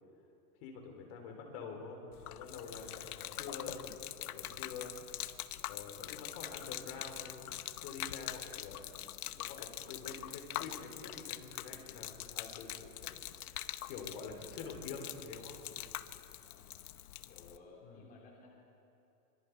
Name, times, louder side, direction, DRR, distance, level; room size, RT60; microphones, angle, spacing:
voice 1, 0.6-4.9 5.7-8.8 9.3-13.2 13.5-15.6 17.8-18.1, left 5 dB, 40° left, 3 dB, 3.7 m, -47 dB
Gurgling / Liquid, 2.1-17.6, left 13 dB, 75° left, 1.0 m, -44 dB
voice 2, 16.4-16.7 17.3-18.5, left 3 dB, 20° left, -2 dB, 3.0 m, -58 dB
25.5 x 24.5 x 4.7 m, 2.8 s
supercardioid pair, 150°, 45 cm